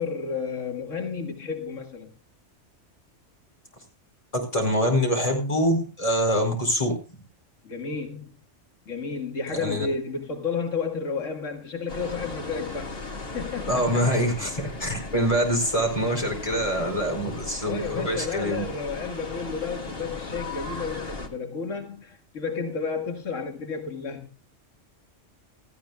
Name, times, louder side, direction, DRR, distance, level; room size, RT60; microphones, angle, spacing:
voice 1, 0.0-2.1 7.6-8.4 8.9-13.0 13.3-14.2 17.6-24.3, left 5 dB, 90° left, 2.0 m, -32 dB
voice 2, 4.3-7.0 9.6-9.9 13.7-18.6, equal, 30° left, 4.7 m, -25 dB
sound 1, 11.9-21.3, left 3 dB, 50° left, 1.9 m, -37 dB
17.5 x 14.5 x 2.3 m
omnidirectional pair, 1.3 m